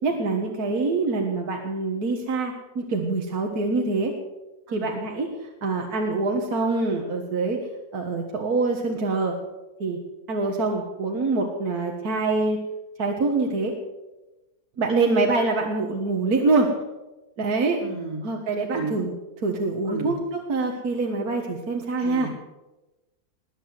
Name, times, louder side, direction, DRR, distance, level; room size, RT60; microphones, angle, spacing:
voice 1, 0.0-4.1 4.7-7.6 7.9-9.4 9.8-10.0 10.3-12.6 13.0-13.7 14.8-16.7 17.4-17.8 18.2-19.1 19.4-22.3, right 3 dB, 70° right, 2 dB, 2.1 m, -25 dB
voice 2, 17.8-18.2 18.7-18.9 19.9-20.1 22.0-22.3, right 4 dB, 90° right, 1 dB, 3.6 m, -32 dB
20.5 x 8.6 x 7.7 m, 1.0 s
omnidirectional pair, 1.7 m